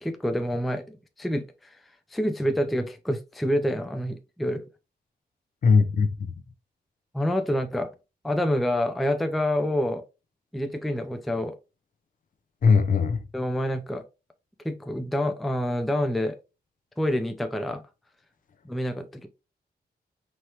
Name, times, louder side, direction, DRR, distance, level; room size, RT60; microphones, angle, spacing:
voice 1, 0.0-1.8 2.1-4.6 7.1-7.9 8.2-10.0 10.5-11.6 13.3-14.0 14.6-16.4 17.0-17.8 18.7-19.3, left 1 dB, ahead, 0.4 m, -27 dB
voice 2, 5.6-6.3 12.6-13.2, left 5 dB, 50° left, 0.6 m, -20 dB
4.4 x 3.2 x 2.8 m
wide cardioid pair, 170°, 17 cm